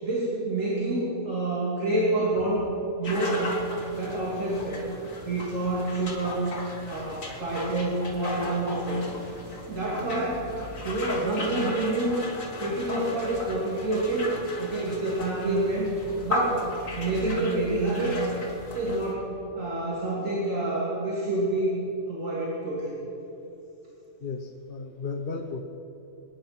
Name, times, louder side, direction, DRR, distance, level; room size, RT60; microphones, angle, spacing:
voice 1, 0.0-2.6 3.0-3.6 3.9-4.8 5.2-6.4 6.9-9.0 9.7-10.4 10.8-12.1 12.6-14.3 14.6-15.9 16.2-16.6 17.0-18.2 18.7-19.3 19.5-21.8 22.1-23.0, right 2 dB, 80° right, -7 dB, 3.2 m, -27 dB
sound 1, 3.0-19.1, left 1 dB, 80° left, 2.4 m, -36 dB
voice 2, 24.2-25.6, left 4 dB, 50° left, 2 dB, 1.1 m, -34 dB
23.5 x 10.0 x 5.9 m, 2.9 s
omnidirectional pair, 1.4 m